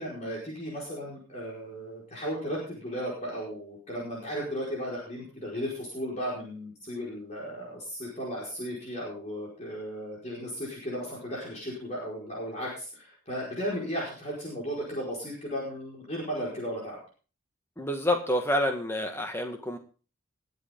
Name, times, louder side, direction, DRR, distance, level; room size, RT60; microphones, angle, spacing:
voice 1, 0.0-17.0, equal, 35° left, -4 dB, 4.8 m, -35 dB
voice 2, 17.8-19.8, left 1 dB, 10° left, 4 dB, 1.8 m, -28 dB
21.0 x 8.3 x 3.7 m, 0.36 s
head